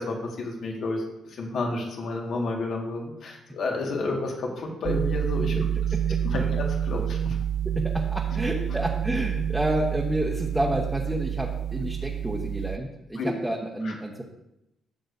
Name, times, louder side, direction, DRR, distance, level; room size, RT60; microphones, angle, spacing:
voice 1, 0.0-5.6 6.2-7.4 13.1-13.3 13.8-13.9, left 2 dB, 65° left, 0 dB, 1.7 m, -31 dB
sound 1, 4.8-12.8, right 9 dB, 60° right, 0.5 m, -28 dB
voice 2, 5.6-6.5 7.6-14.2, right 1 dB, 10° right, -2 dB, 1.1 m, -30 dB
13.5 x 6.6 x 2.7 m, 0.90 s
cardioid pair, 90°, 0 cm